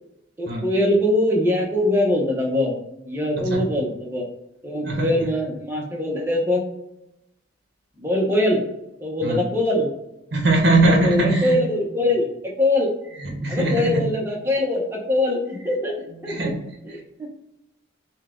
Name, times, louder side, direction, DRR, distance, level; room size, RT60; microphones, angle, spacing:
voice 1, 0.4-2.7 3.0-4.2 4.6-6.6 8.0-8.6 9.0-9.9 10.9-12.3 12.6-12.9 13.5-16.5 16.9-17.3, left 1 dB, 10° right, -1 dB, 0.8 m, -22 dB
voice 2, 3.4-3.7 4.8-5.1 9.2-9.5 10.3-11.6 13.2-14.1 16.3-16.7, right 2 dB, 55° right, 2 dB, 0.8 m, -21 dB
5.5 x 2.3 x 3.6 m, 0.88 s
head